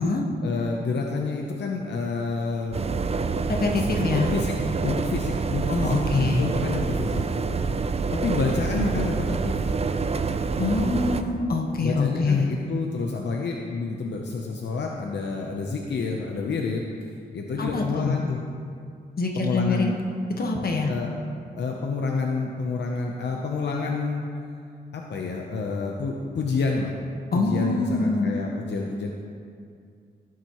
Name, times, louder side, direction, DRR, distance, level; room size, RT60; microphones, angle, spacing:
voice 1, 0.4-2.8 3.8-4.5 4.8-5.9 6.2-7.9 8.2-9.6 11.8-18.4 19.3-20.0 20.9-21.1 21.6-24.2 24.9-26.9 27.3-29.1, left 4 dB, 80° left, 0 dB, 0.8 m, -29 dB
sound 1, 2.7-11.2, right 4 dB, 35° right, 0.5 m, -27 dB
voice 2, 3.5-4.3 5.7-6.5 10.6-12.5 17.6-18.2 19.2-19.9 20.4-20.9 27.3-28.3, left 3 dB, 60° left, 1 dB, 1.3 m, -24 dB
17.5 x 7.5 x 3.1 m, 2.3 s
wide cardioid pair, 105°, 18 cm